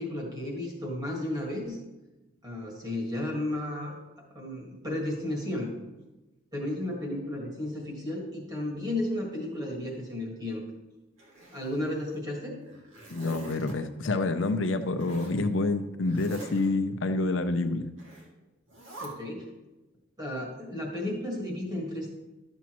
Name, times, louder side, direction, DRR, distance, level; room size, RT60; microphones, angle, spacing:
voice 1, 0.0-1.8 2.4-3.9 4.3-5.8 6.5-10.6 11.5-12.6 19.0-19.5 20.2-22.1, left 1 dB, 20° right, -2 dB, 1.8 m, -33 dB
Zipper (clothing), 11.2-12.2 12.6-13.7 15.0-15.4 16.0-16.7 18.0-18.3 18.7-19.1, right 2 dB, 70° right, 2.2 m, -45 dB
voice 2, 13.1-17.9, left 2 dB, 60° left, 8 dB, 0.6 m, -28 dB
12.0 x 7.2 x 3.0 m, 1.1 s
head